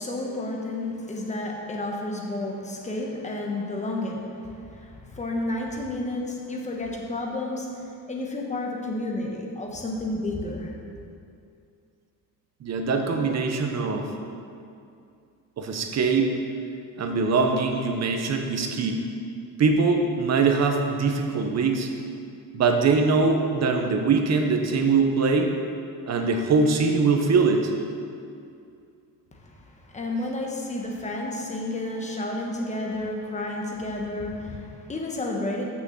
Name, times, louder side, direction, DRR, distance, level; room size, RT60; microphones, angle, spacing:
voice 1, 0.0-10.7 29.3-35.6, left 2 dB, 20° left, 0 dB, 1.2 m, -31 dB
voice 2, 12.6-14.1 15.6-16.3 17.0-19.1 19.6-21.9 22.5-25.5 26.1-27.7, right 4 dB, 45° right, 3 dB, 1.0 m, -22 dB
6.2 x 6.2 x 7.2 m, 2.5 s
cardioid pair, 140°, 36 cm